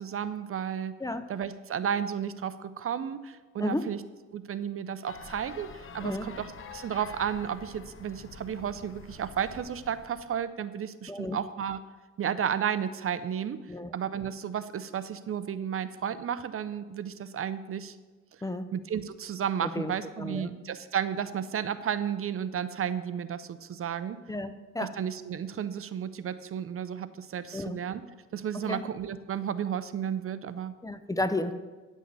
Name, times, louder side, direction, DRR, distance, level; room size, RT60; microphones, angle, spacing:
voice 1, 0.0-0.9 1.3-4.0 4.3-11.8 12.2-13.6 13.9-17.9 18.7-24.2 24.8-28.0 28.3-30.7, right 8 dB, 45° right, 13 dB, 0.6 m, -33 dB
voice 2, 3.6-3.9 6.0-6.3 11.1-11.4 13.7-13.9 18.4-18.7 19.6-19.9 20.2-20.5 24.3-25.0 27.5-27.8 28.5-28.8 30.8-31.5, left 2 dB, 10° left, 10 dB, 0.6 m, -32 dB
sound 1, 5.0-10.4, left 5 dB, 45° left, 1.0 m, -47 dB
10.0 x 6.3 x 6.9 m, 1.3 s
cardioid pair, 90°, 30 cm